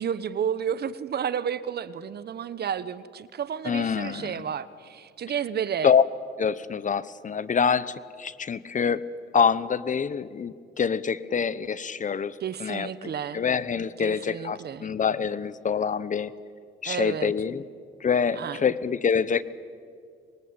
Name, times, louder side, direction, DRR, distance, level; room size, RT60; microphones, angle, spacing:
voice 1, 0.0-5.9 12.4-13.4 14.0-14.9 16.8-17.3 18.4-18.6, right 8 dB, 55° right, 16 dB, 1.1 m, -31 dB
voice 2, 3.6-4.4 5.8-6.0 6.4-9.0 9.3-16.3 16.8-17.6 18.0-19.4, left 6 dB, 40° left, 17 dB, 1.0 m, -26 dB
25.5 x 22.5 x 8.9 m, 2.2 s
cardioid pair, 90°, 20 cm